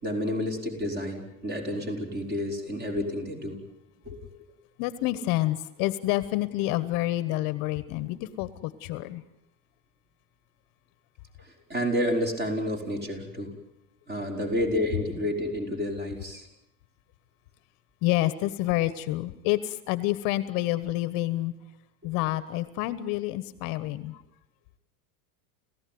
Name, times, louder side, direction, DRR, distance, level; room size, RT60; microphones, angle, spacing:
voice 1, 0.0-3.6 4.1-4.2 11.4-13.5 14.1-16.5, left 1 dB, 20° right, 3 dB, 5.6 m, -30 dB
voice 2, 4.8-9.2 18.0-21.5 22.0-24.2, left 16 dB, 50° left, 15 dB, 1.3 m, -28 dB
30.0 x 16.0 x 9.5 m, 0.86 s
supercardioid pair, 140°, 43 cm